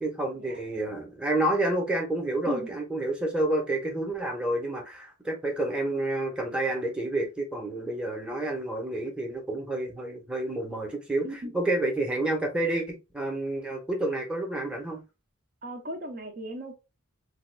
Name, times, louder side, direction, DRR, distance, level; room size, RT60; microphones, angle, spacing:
voice 1, 0.0-15.0, right 2 dB, 5° right, 0.8 m, -29 dB
voice 2, 11.2-11.6 15.6-16.7, equal, 40° right, 0.6 m, -36 dB
3.4 x 2.3 x 3.3 m
head